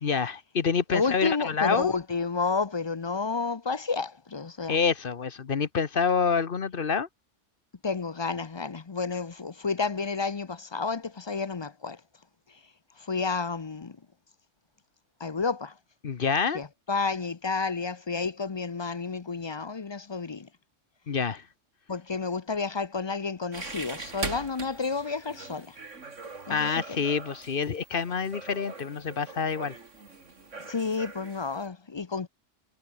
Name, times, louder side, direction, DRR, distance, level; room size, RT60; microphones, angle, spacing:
voice 1, 0.0-1.9 4.7-7.1 16.0-16.6 21.1-21.4 26.5-29.7, left 5 dB, 50° left, 1.1 m, -27 dB
voice 2, 0.9-4.8 7.8-12.0 13.0-14.0 15.2-15.7 16.5-20.5 21.9-25.8 26.5-27.0 30.6-32.3, left 4 dB, 30° left, 0.5 m, -31 dB
sound 1, 23.5-31.7, right 4 dB, 75° right, 3.0 m, -41 dB
omnidirectional pair, 1.3 m